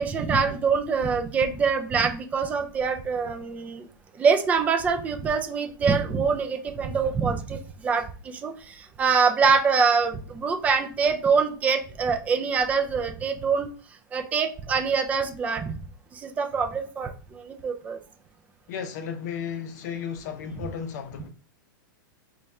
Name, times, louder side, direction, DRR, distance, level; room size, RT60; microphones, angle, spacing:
voice 1, 0.0-3.9 4.2-13.7 14.1-15.7 16.1-18.0, right 5 dB, 15° right, 0.3 m, -25 dB
voice 2, 18.7-21.3, left 7 dB, 55° left, 0.6 m, -34 dB
3.1 x 2.3 x 4.1 m
supercardioid pair, 155°, 11 cm